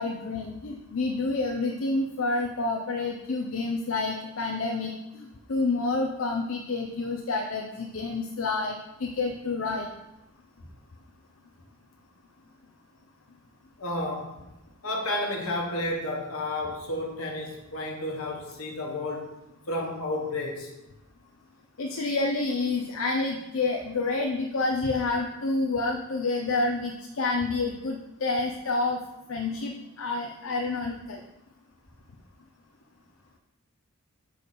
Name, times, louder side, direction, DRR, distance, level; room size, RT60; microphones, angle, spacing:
voice 1, 0.0-9.9 21.8-29.0 29.3-31.2, left 3 dB, 70° left, 1 dB, 0.6 m, -29 dB
voice 2, 13.8-14.4 14.8-19.4 19.7-20.7, left 1 dB, 85° left, 1 dB, 1.4 m, -31 dB
6.6 x 5.0 x 4.2 m, 0.97 s
head